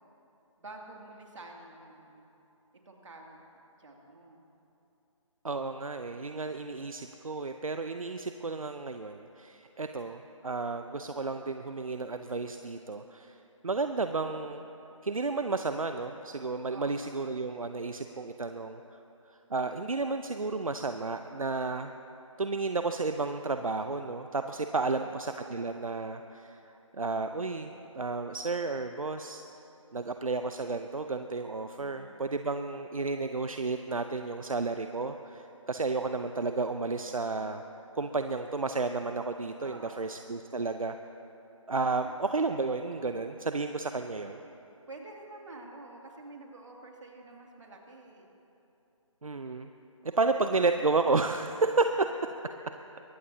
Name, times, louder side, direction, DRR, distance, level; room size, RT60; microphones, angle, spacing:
voice 1, 0.6-2.2 2.8-3.4 3.8-4.4 16.7-17.0 24.8-25.2 31.8-32.3 39.6-40.1 44.9-48.3 50.0-50.2, right 2 dB, 65° right, 0 dB, 2.7 m, -48 dB
voice 2, 5.4-13.4 13.6-14.7 15.0-18.8 19.5-21.9 22.4-29.4 29.9-37.6 38.0-41.0 41.7-44.4 49.2-49.7 50.0-52.1, right 3 dB, 85° right, 7 dB, 0.7 m, -32 dB
23.0 x 18.0 x 2.9 m, 2.9 s
figure-of-eight pair, 155°, 17 cm